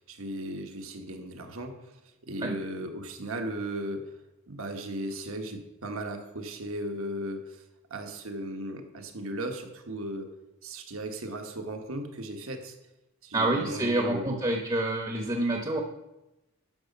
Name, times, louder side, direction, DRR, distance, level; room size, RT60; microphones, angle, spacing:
voice 1, 0.1-1.8 2.3-4.1 4.5-7.6 7.9-10.3 10.6-12.8 13.2-14.4, right 1 dB, 65° right, 4 dB, 1.3 m, -36 dB
voice 2, 13.3-15.8, right 1 dB, 20° right, 2 dB, 1.0 m, -27 dB
11.5 x 6.4 x 5.3 m, 0.97 s
head